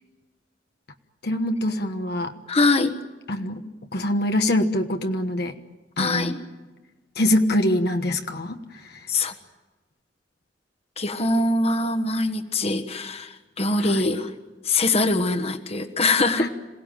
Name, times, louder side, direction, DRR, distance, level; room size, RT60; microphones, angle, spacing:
voice 1, 1.2-2.3 3.3-3.6 3.9-5.5 6.0-6.3 7.1-9.1 13.8-14.0 16.4-16.5, left 1 dB, 60° left, 5 dB, 1.3 m, -24 dB
voice 2, 2.5-2.9 6.0-6.4 9.1-9.3 11.0-14.3 14.6-16.5, left 2 dB, 35° left, 7 dB, 1.4 m, -23 dB
27.0 x 17.5 x 9.1 m, 1.2 s
head